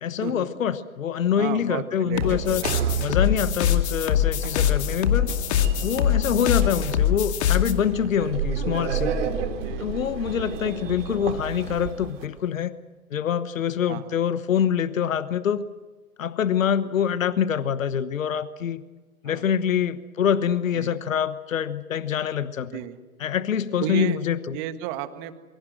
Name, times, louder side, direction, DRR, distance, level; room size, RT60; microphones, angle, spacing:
voice 1, 0.0-2.6 3.0-5.3 5.8-9.2 9.8-12.7 13.1-15.6 16.2-18.8 19.2-22.7 23.2-24.6, left 8 dB, 65° left, 14 dB, 1.2 m, -25 dB
voice 2, 1.4-3.5 9.6-10.1 13.9-14.1 19.3-19.4 20.7-21.0 22.7-23.0 23.8-24.2 24.5-25.4, right 12 dB, 35° right, 10 dB, 1.7 m, -34 dB
Sliding door, 2.1-12.3, right 6 dB, 55° right, 3.4 m, -32 dB
sound 1, 2.2-7.7, left 9 dB, 50° left, 2.5 m, -23 dB
27.0 x 24.5 x 6.4 m, 1.2 s
figure-of-eight pair, 120°, 42 cm